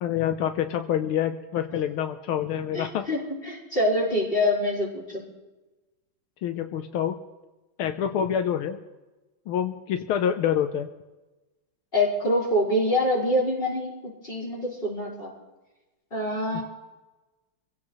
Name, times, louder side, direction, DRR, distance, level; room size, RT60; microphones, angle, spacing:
voice 1, 0.0-3.0 6.4-7.2 7.8-8.8 9.5-10.9 16.5-16.6, left 9 dB, 85° left, 7 dB, 1.7 m, -27 dB
voice 2, 2.7-5.2 11.9-15.3 16.1-16.6, left 1 dB, 25° left, -4 dB, 5.1 m, -25 dB
26.5 x 16.0 x 3.2 m, 1.1 s
omnidirectional pair, 2.3 m